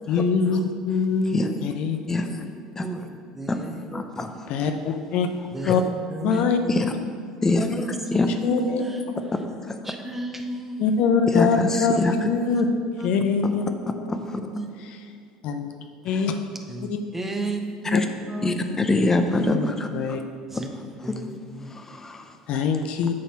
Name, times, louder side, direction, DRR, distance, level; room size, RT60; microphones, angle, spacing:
voice 1, 0.1-1.3 1.6-2.0 2.4-2.5 4.5-5.3 5.7-5.8 6.2-6.6 8.4-8.8 10.8-12.7 13.0-13.7 13.9-14.1 15.4-15.7 16.0-16.5 16.9-17.0 17.4-17.5 17.9-18.0 19.3-20.2 22.5-23.1, left 5 dB, 55° left, 5 dB, 0.6 m, -23 dB
voice 2, 2.1-2.5 2.8-2.9 3.5-3.6 3.9-4.5 5.6-5.7 6.7-6.9 7.4-7.9 8.1-8.3 9.6-9.8 11.3-12.1 13.4-13.5 14.1-14.4 16.1-16.2 17.9-18.1 18.4-20.2 21.7-22.3, left 2 dB, 20° left, 6 dB, 0.8 m, -24 dB
voice 3, 3.3-4.0 5.5-6.9 7.8-9.3 9.8-10.8 12.4-12.6 13.0-13.1 13.4-13.6 14.5-14.7 16.7-19.1 20.5-20.7 21.0-21.7, right 1 dB, 10° right, 4 dB, 0.9 m, -33 dB
8.4 x 4.2 x 6.0 m, 2.1 s
hypercardioid pair, 70°, 2 cm